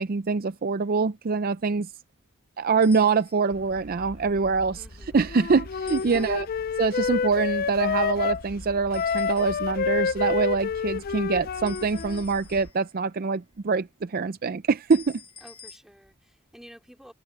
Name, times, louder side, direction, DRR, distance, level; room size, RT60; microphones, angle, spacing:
voice 1, 0.0-1.9 2.6-4.8 5.1-6.5 6.8-15.2, right 4 dB, 45° right, 0.5 m, -24 dB
sound 1, 2.8-3.6 5.9-6.7 8.9-9.8 11.7-13.1 14.9-15.8, left 6 dB, 25° left, 1.9 m, -49 dB
sound 2, 3.5-12.7, left 1 dB, 85° left, 1.7 m, -45 dB
voice 2, 4.7-5.3 6.0-6.4 15.4-17.1, equal, 5° right, 2.6 m, -50 dB
Wind instrument woodwind instrument, 5.3-8.4 8.9-12.2, left 6 dB, 45° left, 0.4 m, -28 dB
head